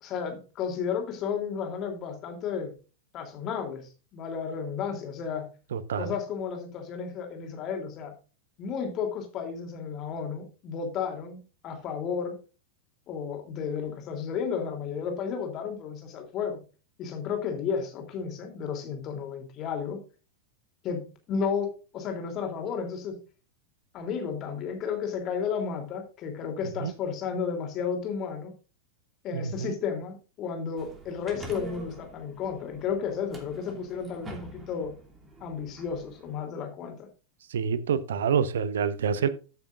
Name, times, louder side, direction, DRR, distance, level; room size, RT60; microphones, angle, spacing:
voice 1, 0.0-2.7 3.1-5.5 6.0-8.1 8.6-12.4 13.1-16.6 17.0-20.0 20.8-23.2 23.9-28.5 29.2-34.9 35.4-37.1, left 6 dB, 35° left, 4 dB, 3.1 m, -33 dB
voice 2, 5.7-6.2 26.8-26.9 29.3-29.7 37.5-39.3, right 7 dB, 60° right, 16 dB, 0.9 m, -27 dB
sound 1, 30.8-36.4, right 1 dB, 15° right, 2.8 m, -46 dB
14.0 x 6.9 x 2.5 m, 0.33 s
figure-of-eight pair, 90°, 0 cm